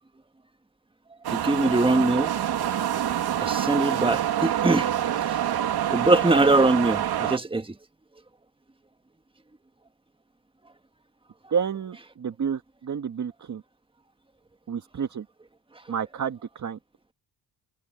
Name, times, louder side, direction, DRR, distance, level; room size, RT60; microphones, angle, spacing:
sound 1, 1.2-7.4, right 11 dB, 65° right, 2.5 m, -26 dB
voice 1, 1.3-2.3 3.4-4.9 5.3-5.4 5.9-7.7, right 2 dB, 15° right, 1.6 m, -22 dB
voice 2, 11.5-13.6 14.7-15.3 15.9-16.8, right 7 dB, 45° right, 1.7 m, -30 dB
cardioid pair, 75°, 41 cm